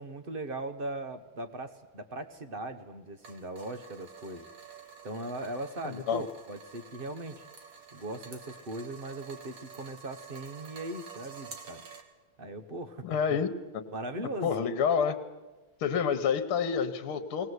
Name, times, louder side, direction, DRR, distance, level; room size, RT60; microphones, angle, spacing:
voice 1, 0.0-4.5 5.0-7.5 7.9-11.8 12.4-13.4 13.9-14.6, right 2 dB, 35° right, 9 dB, 1.0 m, -39 dB
sound 1, 3.2-12.0, right 6 dB, 60° right, 2.4 m, -49 dB
voice 2, 5.8-6.2 13.0-13.5 14.2-15.2 15.8-17.5, left 7 dB, 75° left, 9 dB, 2.0 m, -28 dB
20.5 x 19.0 x 8.1 m, 1.2 s
omnidirectional pair, 2.4 m